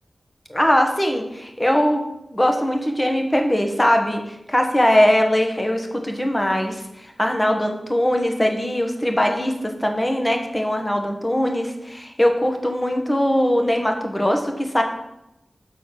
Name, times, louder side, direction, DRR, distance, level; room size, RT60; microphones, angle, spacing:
voice 1, 0.5-2.0 2.3-14.8, left 1 dB, 15° left, 3 dB, 1.3 m, -21 dB
6.5 x 4.1 x 6.0 m, 0.88 s
cardioid pair, 45°, 0 cm